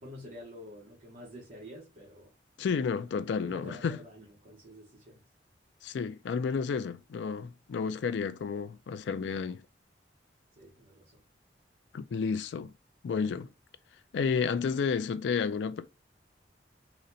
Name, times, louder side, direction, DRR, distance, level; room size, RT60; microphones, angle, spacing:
voice 1, 0.0-2.3 3.4-5.2 10.6-11.2, left 1 dB, 50° right, 0.9 m, -48 dB
voice 2, 2.6-4.0 5.8-9.7 11.9-12.7 13.0-13.5 14.1-15.9, left 5 dB, 80° left, 0.3 m, -31 dB
3.9 x 2.1 x 2.6 m
head